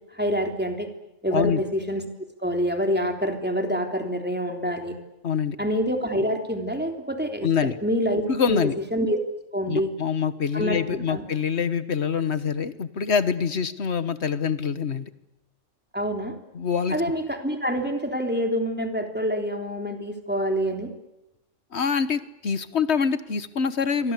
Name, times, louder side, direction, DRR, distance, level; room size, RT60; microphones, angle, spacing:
voice 1, 0.1-0.9 1.2-2.0 2.4-5.0 5.6-7.5 7.8-9.2 9.5-9.9 10.5-11.2 15.9-16.3 16.9-20.9, equal, 10° right, 3 dB, 3.4 m, -26 dB
voice 2, 1.3-1.6 5.2-5.6 7.4-7.7 8.3-8.7 9.7-15.0 16.5-17.0 21.7-24.1, left 6 dB, 60° left, 13 dB, 1.5 m, -25 dB
28.0 x 24.0 x 8.3 m, 0.94 s
omnidirectional pair, 1.3 m